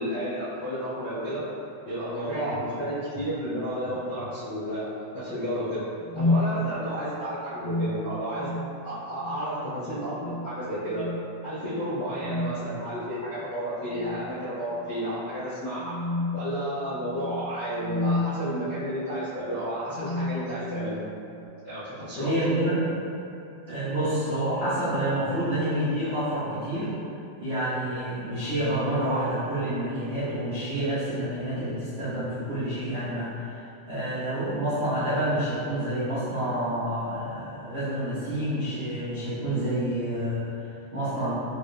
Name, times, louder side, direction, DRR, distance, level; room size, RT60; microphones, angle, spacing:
voice 1, 0.0-1.4 1.8-4.9 5.1-5.8 6.1-8.5 8.8-11.1 11.4-15.9 16.3-21.0 21.6-22.3, equal, 85° left, -14 dB, 0.6 m, -32 dB
sound 1, 2.5-2.7 3.1-3.3 3.8-4.3 6.0-6.5 7.4-8.7 9.1-9.3 10.0-10.5 10.8-11.1 12.1-12.6 13.8-14.3 14.7-14.8 15.7-18.3 19.2-19.4 19.9-20.9, left 2 dB, 65° right, 1.4 m, -31 dB
voice 2, 22.2-22.9 23.6-26.9 27.4-41.3, right 1 dB, 85° right, -14 dB, 1.0 m, -28 dB
6.9 x 2.5 x 2.3 m, 2.8 s
omnidirectional pair, 3.7 m